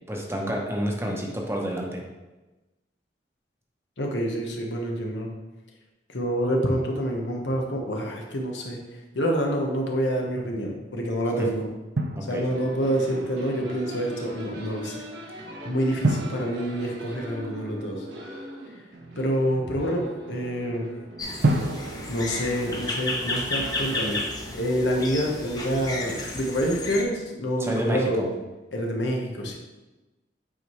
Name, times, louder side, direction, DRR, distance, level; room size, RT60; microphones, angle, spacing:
voice 1, 0.1-2.0 11.4-11.5 12.1-12.4 27.6-28.3, equal, 15° right, -1 dB, 0.9 m, -29 dB
voice 2, 4.0-5.3 6.1-8.8 9.1-11.7 12.3-15.0 15.6-18.0 19.2-20.9 22.1-24.2 24.5-28.2 28.7-29.6, equal, 85° left, 0 dB, 1.2 m, -27 dB
Drum, 12.0-13.0 16.0-17.9 21.4-23.4, right 2 dB, 70° right, 0.6 m, -29 dB
sound 1, 12.5-26.1, equal, 90° right, 1.5 m, -41 dB
sound 2, 21.2-27.0, left 2 dB, 20° left, 0.9 m, -32 dB
8.3 x 4.6 x 3.2 m, 1.1 s
head